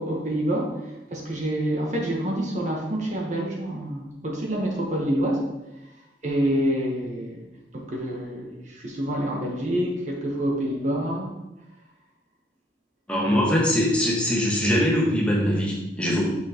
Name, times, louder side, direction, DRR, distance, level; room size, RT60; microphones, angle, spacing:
voice 1, 0.0-5.5 6.2-7.4 7.7-11.3, right 1 dB, 45° right, -1 dB, 1.1 m, -27 dB
voice 2, 13.1-16.2, equal, 5° left, -4 dB, 1.2 m, -22 dB
6.1 x 5.8 x 2.9 m, 0.99 s
head